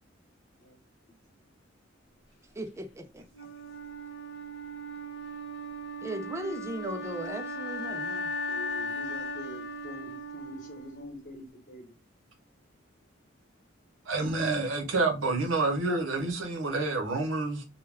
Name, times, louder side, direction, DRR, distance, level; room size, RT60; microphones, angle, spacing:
voice 1, 2.6-3.3 6.0-8.3, right 1 dB, 15° right, 0.3 m, -38 dB
Wind instrument woodwind instrument, 3.3-11.4, left 1 dB, 60° left, 0.6 m, -37 dB
voice 2, 8.5-11.9, left 2 dB, 40° left, 1.0 m, -45 dB
voice 3, 14.1-17.6, right 3 dB, 75° right, 0.7 m, -28 dB
2.2 x 2.1 x 3.2 m
head